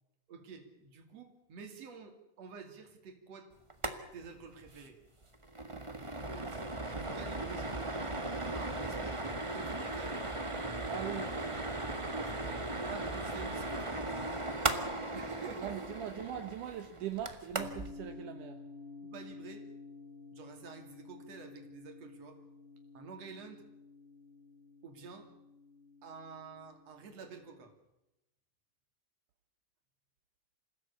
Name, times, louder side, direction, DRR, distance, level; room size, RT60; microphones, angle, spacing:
voice 1, 0.3-3.5 4.1-5.0 6.3-7.7 8.5-10.3 12.2-14.8 15.1-15.7 19.0-19.7 20.3-22.4 22.9-23.6 24.8-25.3 26.0-27.7, right 5 dB, 55° right, 5 dB, 3.8 m, -49 dB
sound 1, 3.7-4.0 4.2-4.3 4.7-4.9 5.2-17.9, right 2 dB, 25° right, 0.6 m, -37 dB
voice 2, 7.4-7.9 10.9-12.0 15.6-18.6, right 10 dB, 80° right, 6 dB, 2.7 m, -42 dB
sound 2, 17.6-27.7, left 4 dB, 35° left, 1.0 m, -52 dB
27.0 x 16.5 x 8.5 m, 0.93 s
omnidirectional pair, 3.6 m